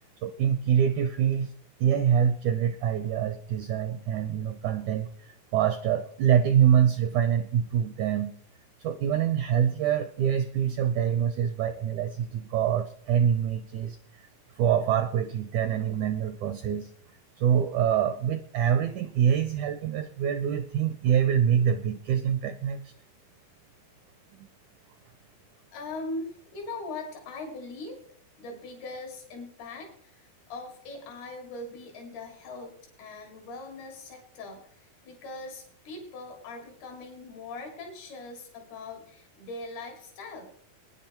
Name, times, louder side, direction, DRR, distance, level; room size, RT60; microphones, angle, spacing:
voice 1, 0.2-1.5 1.8-8.4 8.8-14.0 14.6-16.9 17.4-22.8, right 9 dB, 80° right, 10 dB, 1.7 m, -25 dB
voice 2, 25.7-28.0 28.4-40.5, left 2 dB, 85° left, 2 dB, 5.0 m, -41 dB
20.5 x 10.0 x 4.5 m, 0.63 s
omnidirectional pair, 4.4 m